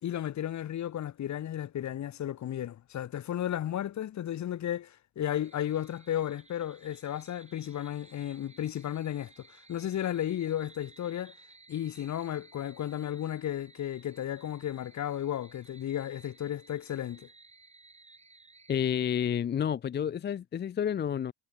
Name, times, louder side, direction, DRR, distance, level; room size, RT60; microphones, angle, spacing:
voice 1, 0.0-11.3 11.7-17.3, left 11 dB, 70° left, 3.0 m, -34 dB
sound 1, 5.4-18.9, right 3 dB, 20° right, 5.2 m, -58 dB
voice 2, 18.7-21.3, left 9 dB, 35° left, 0.5 m, -30 dB
cardioid pair, 90°, 30 cm